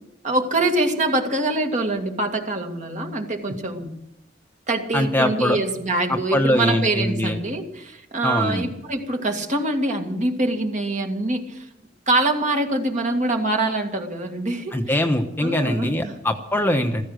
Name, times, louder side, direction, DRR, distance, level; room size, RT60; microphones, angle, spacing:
voice 1, 0.2-3.9 4.7-11.7 12.1-15.0 15.4-16.2, right 2 dB, 40° right, 4 dB, 2.0 m, -24 dB
voice 2, 4.9-5.6 6.1-7.4 8.2-8.7 14.7-17.0, left 1 dB, 10° left, 5 dB, 1.0 m, -22 dB
15.0 x 14.5 x 6.4 m, 0.82 s
head